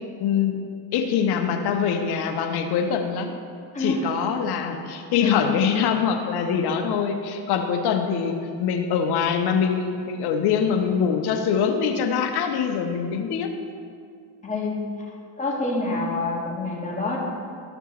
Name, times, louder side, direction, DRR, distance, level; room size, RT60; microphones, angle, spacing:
voice 1, 0.2-0.6 0.9-3.3 3.8-13.5, left 7 dB, 55° left, 5 dB, 1.2 m, -24 dB
voice 2, 14.4-14.8 15.4-17.2, left 3 dB, 15° left, -3 dB, 2.2 m, -26 dB
12.5 x 6.6 x 3.2 m, 2.2 s
hypercardioid pair, 85°, 47 cm